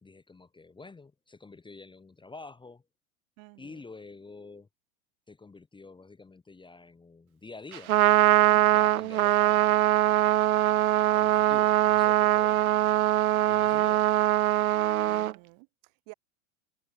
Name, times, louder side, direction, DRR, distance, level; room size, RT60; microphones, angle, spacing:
voice 1, 0.0-2.8 3.6-4.7 5.3-9.9 11.1-12.6 13.5-14.1, left 3 dB, 10° left, 1.4 m, -48 dB
voice 2, 3.4-3.8 15.1-16.1, right 34 dB, 55° right, 3.9 m, -53 dB
Trumpet, 7.7-15.3, right 14 dB, 85° right, 0.6 m, -22 dB
hypercardioid pair, 95°, 42 cm